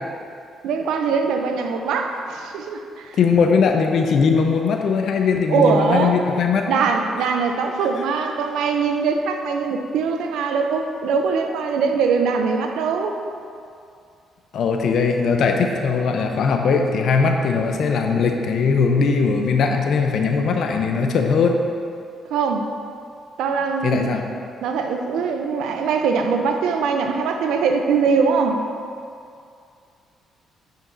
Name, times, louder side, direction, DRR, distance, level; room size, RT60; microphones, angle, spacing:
voice 1, 0.6-3.2 5.5-6.2 6.7-13.2 22.3-22.7 23.4-24.1 24.6-28.6, right 5 dB, 85° right, 5 dB, 0.5 m, -22 dB
voice 2, 3.2-6.7 14.5-21.5 23.8-24.2, left 5 dB, 70° left, 3 dB, 0.6 m, -19 dB
8.7 x 5.8 x 2.7 m, 2.4 s
cardioid pair, 90°, 0 cm